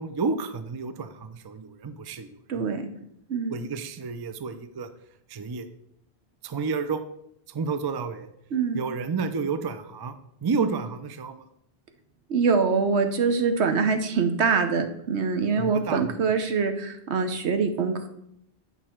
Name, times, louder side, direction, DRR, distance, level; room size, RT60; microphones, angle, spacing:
voice 1, 0.0-2.7 3.5-4.9 5.3-5.7 6.4-7.0 7.5-8.3 8.7-10.1 10.4-11.4 15.6-16.2, right 5 dB, 40° right, 11 dB, 0.3 m, -30 dB
voice 2, 2.5-2.9 3.3-3.5 8.5-8.8 12.3-18.1, right 5 dB, 80° right, 7 dB, 1.1 m, -24 dB
8.4 x 5.4 x 4.4 m, 0.75 s
omnidirectional pair, 1.1 m